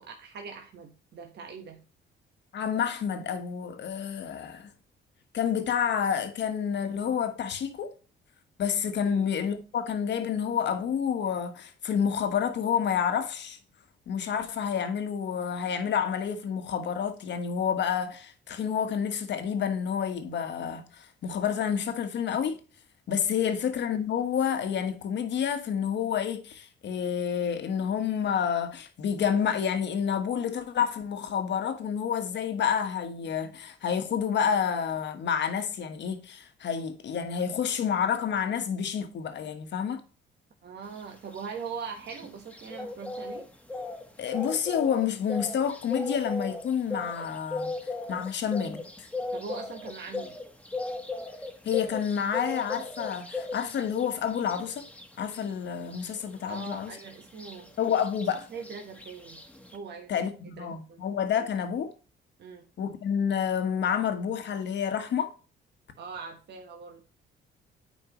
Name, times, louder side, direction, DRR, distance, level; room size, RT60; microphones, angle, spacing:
voice 1, 0.0-1.8 9.0-9.3 23.3-23.5 40.6-43.5 49.3-50.4 56.5-57.8 58.5-59.4 59.7-60.3 60.6-61.0 62.4-62.7 66.0-67.0, right 6 dB, 60° right, 1.3 m, -41 dB
voice 2, 2.5-4.7 5.3-7.9 8.6-13.6 14.1-22.6 23.1-40.0 44.2-47.7 48.1-49.1 51.6-54.8 55.2-56.9 57.8-58.5 60.1-61.9 62.8-65.3, left 8 dB, 65° left, 1.3 m, -29 dB
sound 1, 40.9-59.8, left 3 dB, 5° left, 1.3 m, -38 dB
9.4 x 4.6 x 3.0 m
cardioid pair, 90°, 20 cm